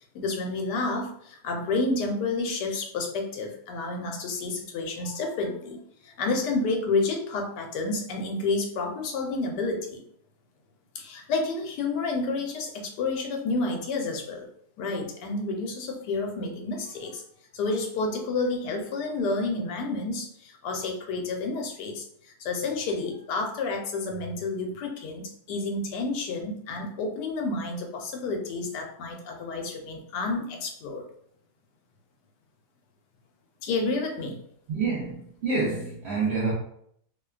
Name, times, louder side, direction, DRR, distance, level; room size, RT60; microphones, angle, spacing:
voice 1, 0.1-10.0 10.9-14.5 14.8-17.2 17.5-31.0 33.6-34.4, left 3 dB, 85° left, 1.2 m, -30 dB
voice 2, 34.7-36.5, right 4 dB, 85° right, 0.5 m, -27 dB
2.8 x 2.1 x 2.3 m
omnidirectional pair, 1.7 m